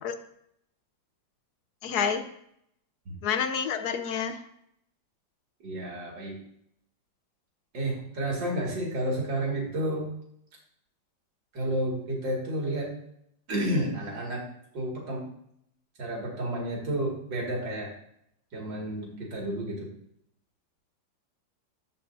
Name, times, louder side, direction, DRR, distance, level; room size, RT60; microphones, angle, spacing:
voice 1, 1.8-2.2 3.2-4.4, left 7 dB, 65° left, 8 dB, 1.2 m, -28 dB
voice 2, 5.6-6.4 7.7-10.1 11.5-12.9 13.5-14.4 14.7-15.2 16.0-17.9 18.5-19.9, right 1 dB, 75° right, -2 dB, 2.8 m, -31 dB
14.0 x 5.4 x 2.6 m, 0.73 s
omnidirectional pair, 2.0 m